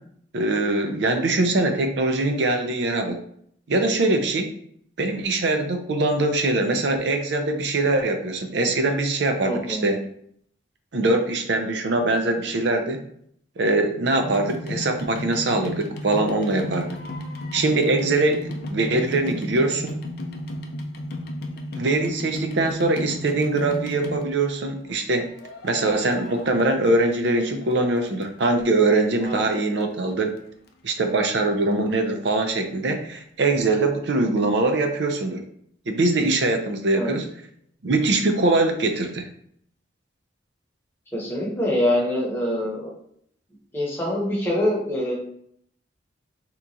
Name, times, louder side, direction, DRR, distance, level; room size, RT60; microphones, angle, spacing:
voice 1, 0.3-3.2 3.7-4.5 5.0-10.1 10.9-13.0 13.6-16.9 17.5-20.0 21.8-25.3 25.6-30.4 30.8-35.4 35.9-37.3 37.8-39.3, right 2 dB, 60° right, 5 dB, 0.5 m, -22 dB
voice 2, 9.4-9.9 14.7-14.8 29.2-29.4 36.9-37.1 41.1-42.9 43.7-45.2, left 1 dB, 10° left, -4 dB, 0.9 m, -25 dB
sound 1, 14.2-24.6 25.4-27.5 27.8-28.7 29.2-29.3 29.5-29.6 29.8-29.9 30.4-30.5 30.7-30.8, left 1 dB, 50° left, 0.4 m, -34 dB
2.9 x 2.4 x 3.8 m, 0.67 s
head